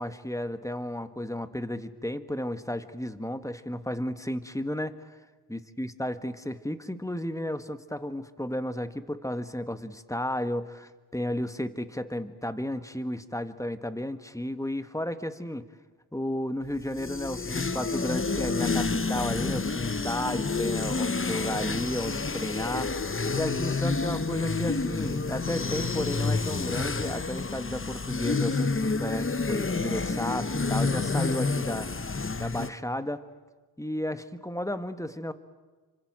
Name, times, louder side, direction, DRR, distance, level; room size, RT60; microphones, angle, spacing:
voice 1, 0.0-5.0 5.5-15.7 16.1-22.9 23.4-33.2 33.8-35.3, left 1 dB, 10° left, 10 dB, 1.7 m, -33 dB
sound 1, 16.8-32.7, left 4 dB, 30° left, 1.1 m, -29 dB
28.5 x 25.5 x 7.7 m, 1.3 s
cardioid pair, 50°, 39 cm